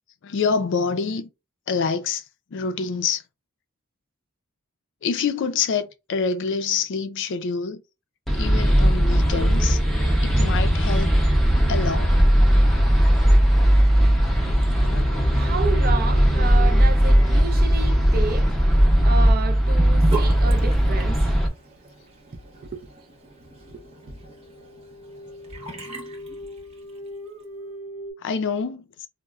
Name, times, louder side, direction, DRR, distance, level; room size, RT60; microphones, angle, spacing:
voice 1, 0.2-1.3 1.7-2.2 2.5-3.2 5.0-7.8 8.3-9.8 10.2-11.2 11.7-12.2 14.9-15.3 28.2-28.9, left 5 dB, 55° left, 0.4 m, -26 dB
sound 1, 8.3-21.5, equal, ahead, 0.6 m, -18 dB
sound 2, 9.3-11.7 14.5-20.1 21.0-21.1 21.4-21.6 22.2-22.3 22.4-22.7 22.9-28.1, equal, 60° right, 1.1 m, -42 dB
voice 2, 15.3-18.5 19.0-21.3 22.6-22.9 23.7-24.2, right 4 dB, 45° right, 0.4 m, -31 dB
Sink (filling or washing) / Bathtub (filling or washing), 19.8-27.1, right 2 dB, 30° right, 0.8 m, -37 dB
4.0 x 2.1 x 2.3 m
head